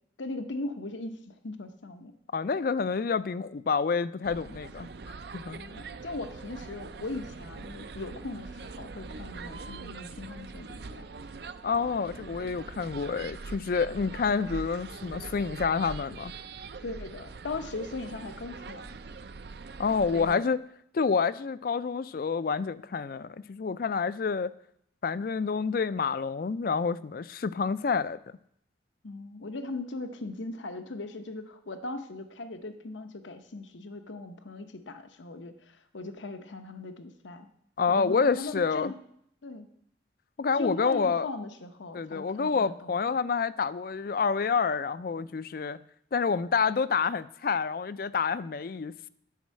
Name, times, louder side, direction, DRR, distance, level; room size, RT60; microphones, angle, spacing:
voice 1, 0.2-2.1 5.6-11.1 13.9-14.2 16.8-19.0 20.0-20.5 29.0-37.5 37.9-39.0 39.4-39.7 40.6-42.9, left 2 dB, 80° left, 9 dB, 0.8 m, -39 dB
voice 2, 2.3-5.6 11.6-16.3 19.8-20.6 20.9-24.5 25.0-28.2 37.8-38.9 40.4-41.3 41.9-45.8 46.1-48.9, left 5 dB, 50° left, 17 dB, 0.4 m, -28 dB
sound 1, 4.2-20.4, right 4 dB, 55° right, 0.5 m, -43 dB
10.5 x 5.4 x 7.5 m, 0.71 s
head